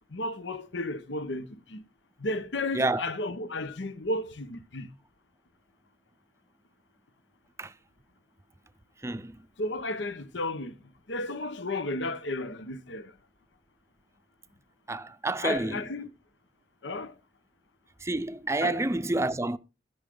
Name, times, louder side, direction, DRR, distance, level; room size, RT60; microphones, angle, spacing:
voice 1, 0.1-1.8 2.2-4.9 9.6-10.8 11.1-13.1 15.4-16.1 16.8-17.2 18.6-18.8 19.1-19.3, left 2 dB, 85° left, 1.1 m, -33 dB
voice 2, 9.0-9.4 14.9-15.8 18.0-19.6, right 2 dB, 15° right, 0.6 m, -29 dB
19.0 x 6.4 x 3.8 m
head